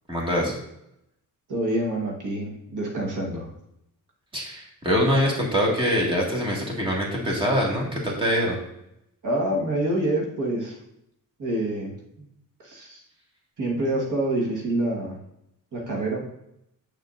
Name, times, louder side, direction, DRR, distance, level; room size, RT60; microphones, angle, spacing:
voice 1, 0.1-0.6 4.3-8.6, equal, 15° right, -3 dB, 1.8 m, -24 dB
voice 2, 1.5-3.5 9.2-10.8 11.4-12.3 12.6-13.0 13.6-15.2 15.7-16.2, right 1 dB, 65° right, -2 dB, 1.5 m, -27 dB
7.8 x 6.9 x 2.5 m, 0.80 s
wide cardioid pair, 130°, 33 cm